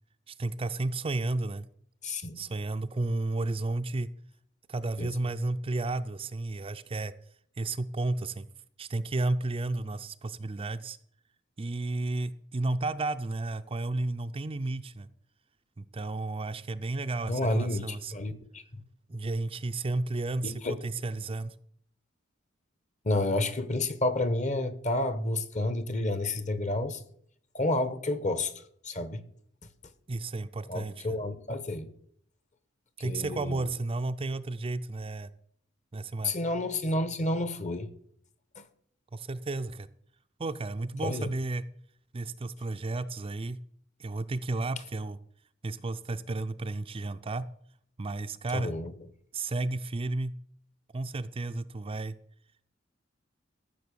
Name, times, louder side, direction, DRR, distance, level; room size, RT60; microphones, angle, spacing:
voice 1, 0.3-1.6 2.4-4.1 4.7-7.1 7.6-8.5 8.8-11.0 11.6-15.1 15.8-18.1 19.1-21.5 30.1-31.1 33.0-35.3 35.9-36.3 39.1-39.9 40.4-41.6 42.1-43.6 44.0-45.2 45.6-47.5 48.0-48.7 49.3-50.3 50.9-52.1, right 2 dB, 30° right, 10 dB, 0.5 m, -32 dB
voice 2, 2.0-2.4 5.0-5.1 17.3-18.8 20.4-20.8 23.0-27.0 27.5-28.5 28.8-29.2 30.7-31.9 33.0-33.6 36.2-37.9 38.6-38.7 41.0-41.3 48.5-48.9, left 2 dB, 40° left, 12 dB, 1.1 m, -30 dB
14.0 x 6.4 x 6.9 m, 0.66 s
head